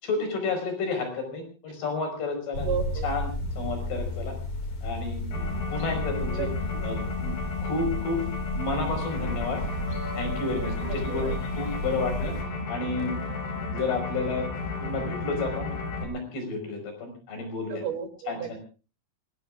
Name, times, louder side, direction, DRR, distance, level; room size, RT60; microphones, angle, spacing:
voice 1, 0.0-2.7 3.0-3.3 3.6-4.3 4.8-6.5 6.8-7.4 7.6-8.3 8.6-9.6 10.1-12.3 12.7-13.2 13.5-14.5 14.8-15.7 16.0-17.9 18.3-18.6, left 3 dB, 80° left, 5 dB, 6.9 m, -31 dB
sound 1, 2.5-12.4, left 1 dB, 35° left, 5.3 m, -33 dB
voice 2, 2.6-3.1 6.2-6.5 10.8-11.4 17.7-18.6, right 8 dB, 75° right, 7 dB, 4.6 m, -33 dB
sound 2, 5.3-16.0, left 4 dB, 65° left, 4.6 m, -33 dB
26.5 x 20.0 x 2.5 m, 0.35 s
omnidirectional pair, 4.5 m